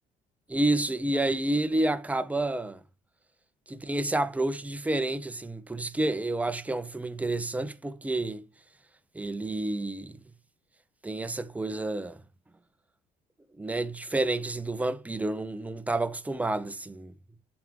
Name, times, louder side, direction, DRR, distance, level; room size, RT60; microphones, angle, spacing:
voice 1, 0.5-2.8 3.7-8.4 9.1-10.2 11.0-12.2 13.6-17.1, right 2 dB, 10° right, 0.7 m, -29 dB
7.1 x 5.0 x 3.0 m
cardioid pair, 110°, 17 cm